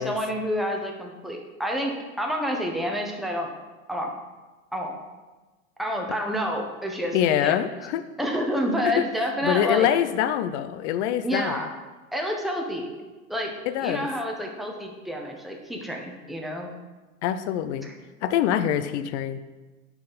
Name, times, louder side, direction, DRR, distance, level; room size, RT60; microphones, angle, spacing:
voice 1, 0.0-3.5 3.9-4.1 4.7-4.9 5.8-7.2 7.4-7.6 8.2-9.9 11.2-11.7 12.1-12.9 13.3-13.5 13.8-16.7 17.8-17.9 18.5-18.8, equal, ahead, 0 dB, 1.2 m, -29 dB
voice 2, 7.1-8.0 8.8-9.0 9.4-11.6 13.7-14.1 17.2-17.9 18.2-19.4, left 10 dB, 55° left, 12 dB, 0.7 m, -24 dB
9.4 x 4.6 x 4.2 m, 1.2 s
hypercardioid pair, 100°, 40 cm